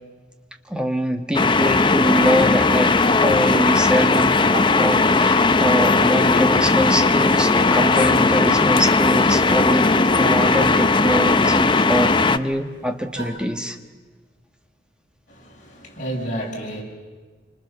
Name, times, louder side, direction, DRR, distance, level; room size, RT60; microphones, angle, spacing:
voice 1, 0.7-4.5 4.8-13.8, equal, 5° right, 5 dB, 1.5 m, -24 dB
sound 1, 1.3-12.4, left 3 dB, 25° left, 0.7 m, -17 dB
sound 2, 4.1-5.2 5.5-5.6 6.0-6.8 7.6-9.0 9.9-11.7 12.6-12.7 13.1-13.4, right 1 dB, 60° right, 4.3 m, -34 dB
voice 2, 15.3-16.8, right 1 dB, 45° left, -3 dB, 7.6 m, -31 dB
27.5 x 25.5 x 6.9 m, 1.4 s
head